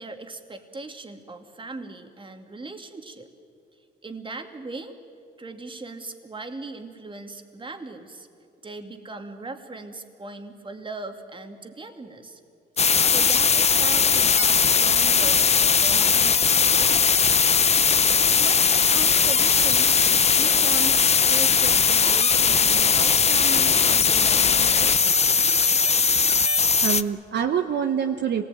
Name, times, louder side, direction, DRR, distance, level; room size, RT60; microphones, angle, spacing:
voice 1, 0.0-3.3 4.0-4.9 5.4-8.3 8.6-12.4 13.0-15.4 15.7-17.0 18.1-25.2, right 3 dB, 25° right, 5 dB, 2.3 m, -38 dB
sound 1, 12.8-27.0, left 6 dB, 30° left, 0.7 m, -19 dB
voice 2, 25.9-28.4, right 8 dB, 60° right, 5 dB, 1.1 m, -27 dB
25.5 x 19.0 x 9.2 m, 2.4 s
cardioid pair, 90°, 20 cm